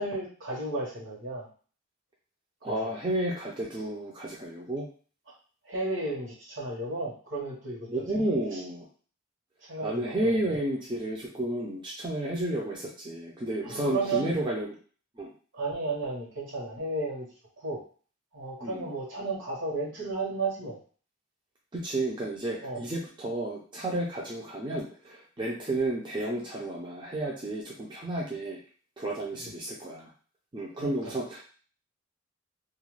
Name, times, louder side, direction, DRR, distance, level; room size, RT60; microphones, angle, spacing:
voice 1, 0.0-1.5 2.6-2.9 5.6-7.9 8.1-8.2 8.5-8.6 9.7-10.3 13.6-14.3 15.5-17.3 17.6-17.8 18.3-20.8 22.6-22.8 29.4-29.5 30.8-31.1, right 3 dB, 65° right, -3 dB, 1.1 m, -33 dB
voice 2, 2.6-4.9 7.9-8.9 9.8-14.8 15.2-15.3 18.6-18.9 21.7-28.6 29.0-30.1 30.5-31.4, right 1 dB, 25° right, -4 dB, 0.4 m, -32 dB
2.4 x 2.2 x 3.1 m, 0.40 s
head